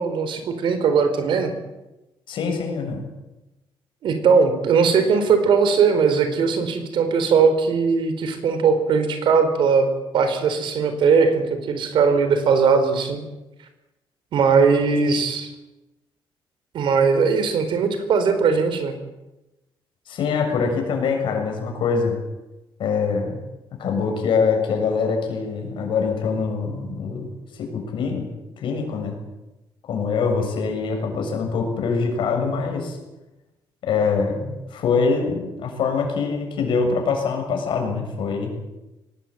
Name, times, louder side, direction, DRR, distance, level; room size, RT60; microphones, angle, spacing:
voice 1, 0.0-1.5 4.0-9.9 10.1-13.2 14.3-15.5 16.7-19.0, right 5 dB, 65° right, 9 dB, 4.2 m, -19 dB
voice 2, 2.3-3.0 15.1-15.2 20.1-22.1 22.8-23.4 23.8-27.3 27.6-28.3 28.6-29.2 29.9-33.0 33.8-38.5, left 5 dB, 70° left, 3 dB, 7.0 m, -24 dB
23.0 x 19.0 x 8.8 m, 1.0 s
cardioid pair, 175°, 9 cm